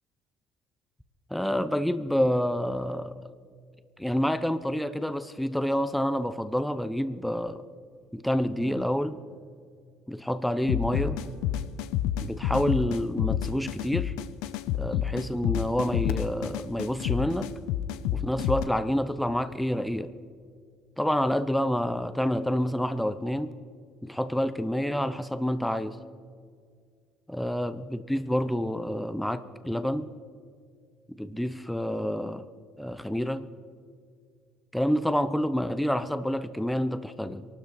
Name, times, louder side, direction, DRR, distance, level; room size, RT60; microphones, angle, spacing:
voice 1, 1.3-3.1 4.0-7.6 8.1-9.2 10.1-11.2 12.2-14.1 14.7-17.5 18.1-20.1 21.0-23.5 24.0-26.0 27.3-30.1 31.2-32.5 32.8-33.5 34.7-37.5, equal, 5° left, 11 dB, 0.8 m, -28 dB
sound 1, 7.8-8.2 8.5-10.4 10.7-12.8, right 5 dB, 40° right, 1.9 m, -46 dB
sound 2, 10.7-18.6, left 11 dB, 80° left, 0.5 m, -29 dB
23.5 x 12.5 x 4.0 m, 2.1 s
supercardioid pair, 85°, 0 cm